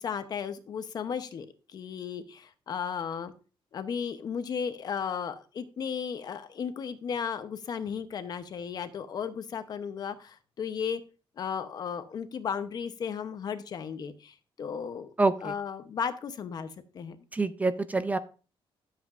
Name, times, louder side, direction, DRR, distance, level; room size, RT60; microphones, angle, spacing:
voice 1, 0.0-3.3 3.7-11.0 11.4-15.1 15.4-17.2, left 7 dB, 45° left, 10 dB, 0.8 m, -35 dB
voice 2, 15.2-15.5 17.3-18.2, right 3 dB, 15° right, 12 dB, 0.4 m, -26 dB
12.5 x 7.5 x 2.5 m, 0.35 s
cardioid pair, 160°, 10 cm